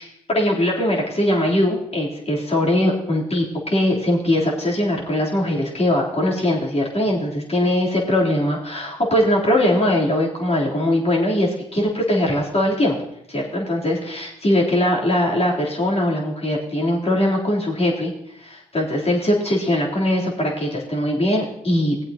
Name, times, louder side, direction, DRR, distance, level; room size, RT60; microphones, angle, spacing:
voice 1, 0.0-13.0 13.3-22.0, left 1 dB, 35° left, -4 dB, 3.4 m, -21 dB
18.0 x 7.8 x 2.9 m, 0.76 s
hypercardioid pair, 45°, 18 cm